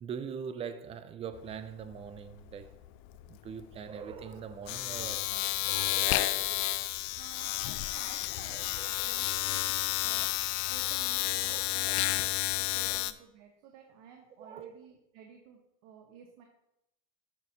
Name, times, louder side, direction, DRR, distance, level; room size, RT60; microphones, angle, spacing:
voice 1, 0.0-2.7 3.3-6.8 8.5-9.3 11.5-11.6 11.9-12.0 12.9-13.0 14.4-14.7, right 7 dB, 15° right, 0.3 m, -43 dB
Domestic sounds home sounds, 1.3-1.6 1.8-13.1, left 17 dB, 50° left, 0.5 m, -31 dB
voice 2, 7.2-10.3 10.7-16.4, right 7 dB, 55° right, 1.2 m, -53 dB
9.6 x 6.3 x 2.7 m
hypercardioid pair, 100°, 44 cm